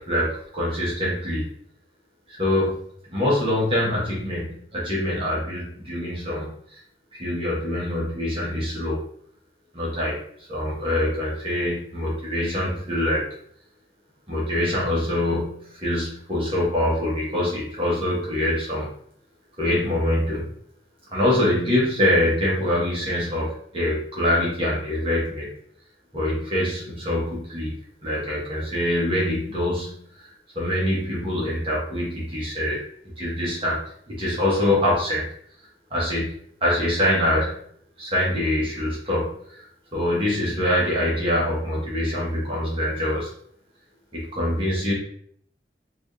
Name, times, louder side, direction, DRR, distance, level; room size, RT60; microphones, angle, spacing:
voice 1, 0.0-1.5 2.3-2.8 3.1-6.8 7.1-9.0 9.7-10.2 10.5-13.2 14.3-18.9 19.6-20.5 21.1-25.5 26.1-27.7 28.0-32.8 33.2-33.8 34.1-35.2 35.9-37.5 38.0-39.6 39.9-43.3 44.1-44.9, left 1 dB, 30° right, -6 dB, 1.3 m, -24 dB
4.5 x 2.7 x 3.1 m, 0.64 s
head